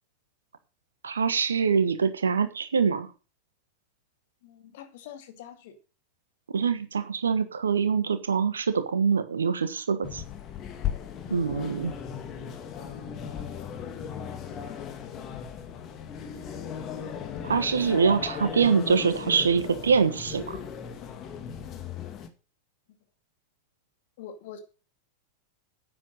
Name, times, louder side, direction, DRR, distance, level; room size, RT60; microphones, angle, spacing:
voice 1, 1.0-3.1 6.5-10.2 11.3-11.9 17.4-20.6, right 6 dB, 70° right, 11 dB, 1.3 m, -24 dB
voice 2, 4.4-5.7 11.3-11.4 24.2-24.6, left 9 dB, 50° left, 7 dB, 2.3 m, -44 dB
sound 1, 10.0-22.3, left 8 dB, 30° left, 2.0 m, -37 dB
10.5 x 8.6 x 6.4 m, 0.34 s
figure-of-eight pair, 90°, 0 cm